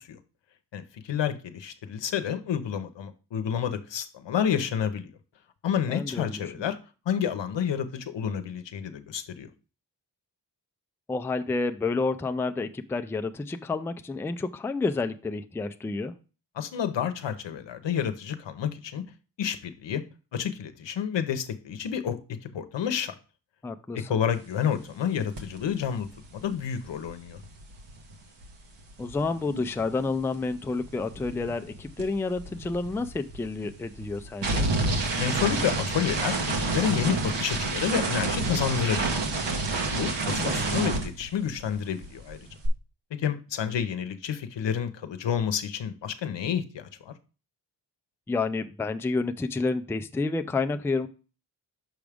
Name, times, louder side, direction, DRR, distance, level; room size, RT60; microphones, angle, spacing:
voice 1, 0.7-5.1 5.6-6.8 7.1-9.5 16.5-19.0 19.4-20.0 20.3-23.1 23.9-26.1 26.3-27.4 35.2-39.2 39.9-42.4 43.2-47.1, left 8 dB, 80° left, 0.8 m, -29 dB
voice 2, 5.9-6.5 11.1-16.1 23.6-24.1 29.0-34.7 40.4-40.9 48.3-51.1, left 3 dB, 5° left, 0.3 m, -30 dB
sound 1, 25.4-25.6 25.8-30.2 30.5-41.8 42.0-42.7, right 3 dB, 80° right, 1.2 m, -30 dB
6.2 x 4.9 x 3.4 m
wide cardioid pair, 90°, 43 cm